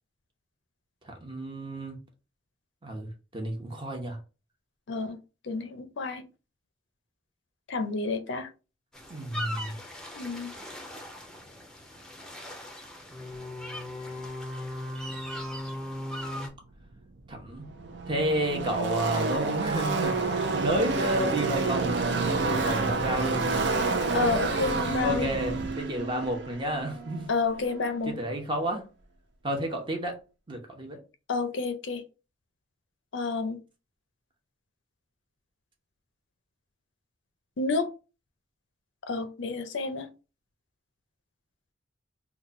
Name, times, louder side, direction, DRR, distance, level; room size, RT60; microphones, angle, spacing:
voice 1, 1.0-2.0 2.8-4.2 9.1-9.7 17.3-17.7 18.1-21.9 22.4-23.5 25.0-27.3 28.1-28.9 29.4-30.2 30.5-31.0, right 1 dB, 25° right, 0.8 m, -31 dB
voice 2, 4.9-5.2 5.4-6.2 7.7-8.5 10.1-10.5 24.1-25.3 27.3-28.2 31.3-32.0 33.1-33.6 37.6-37.9 39.1-40.1, left 3 dB, 70° left, 0.5 m, -29 dB
sound 1, 8.9-16.5, left 1 dB, 5° left, 0.6 m, -38 dB
Car passing by / Race car auto racing, 16.9-17.0 17.2-27.8, right 3 dB, 60° right, 0.6 m, -29 dB
3.0 x 2.3 x 3.8 m
head